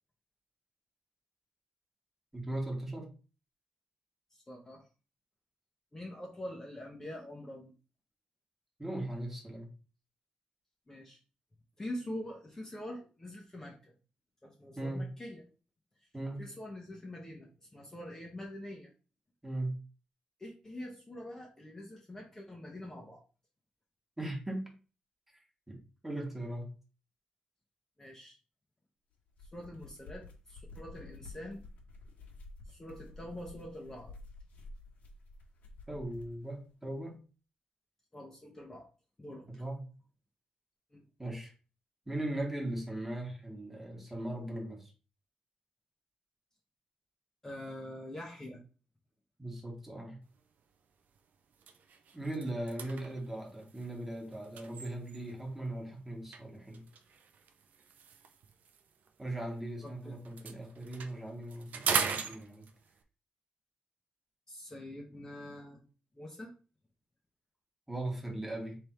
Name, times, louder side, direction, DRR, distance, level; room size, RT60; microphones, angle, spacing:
voice 1, 2.3-3.1 8.8-9.7 14.8-15.1 16.1-16.5 19.4-19.8 24.2-24.7 25.7-25.8 26.0-26.7 35.9-37.1 39.5-39.8 41.2-41.5 42.1-44.9 49.4-50.2 52.1-56.8 59.2-62.6 67.9-68.8, right 1 dB, 10° right, 0 dB, 1.4 m, -38 dB
voice 2, 4.3-4.8 5.9-7.7 10.9-11.2 11.8-13.9 14.4-15.4 16.4-18.9 20.4-23.2 28.0-28.4 29.4-31.6 32.7-34.1 38.1-38.9 39.2-39.6 40.9-41.0 47.4-48.6 59.8-60.2 64.5-65.8 66.1-66.5, left 1 dB, 15° left, -1 dB, 0.9 m, -45 dB
sound 1, 29.2-36.4, left 2 dB, 75° left, 1.6 m, -51 dB
sound 2, 50.4-50.6 51.0-51.2 51.5-55.5 56.3-59.9 60.2-63.0, right 6 dB, 65° right, 0.6 m, -39 dB
3.5 x 3.4 x 4.4 m, 0.35 s
cardioid pair, 120°, 3 cm